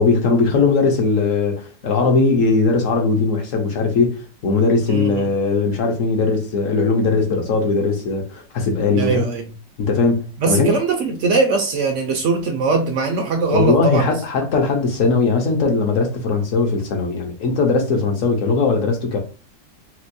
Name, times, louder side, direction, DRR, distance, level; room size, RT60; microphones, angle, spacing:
voice 1, 0.0-9.2 9.8-10.7 13.5-19.2, left 4 dB, 60° left, 0.9 m, -19 dB
voice 2, 4.9-5.3 8.9-9.4 10.4-14.1, right 4 dB, 70° right, 0.7 m, -20 dB
4.3 x 2.2 x 2.6 m
omnidirectional pair, 1.9 m